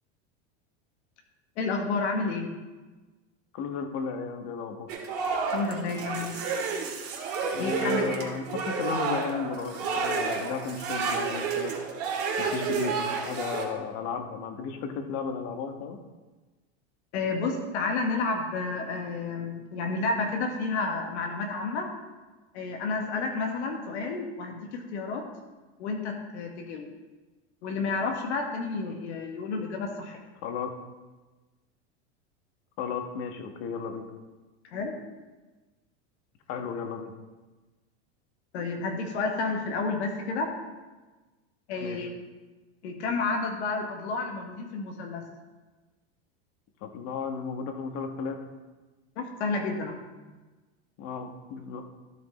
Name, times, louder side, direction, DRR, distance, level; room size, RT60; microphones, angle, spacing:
voice 1, 1.6-2.5 5.5-6.4 7.6-8.3 17.1-21.9 22.5-25.3 25.8-26.9 27.6-30.2 34.6-35.0 38.5-40.5 41.7-42.1 42.8-45.2 49.2-50.0, left 3 dB, 75° left, 2 dB, 1.5 m, -30 dB
voice 2, 3.5-4.9 7.5-11.8 12.4-16.0 30.4-30.7 32.8-34.1 36.5-37.1 41.8-42.1 46.8-48.5 51.0-51.8, left 5 dB, 50° left, 6 dB, 1.3 m, -34 dB
sound 1, 4.9-13.7, right 5 dB, 45° right, 1.9 m, -30 dB
13.0 x 5.2 x 4.1 m, 1.2 s
supercardioid pair, 130°, 34 cm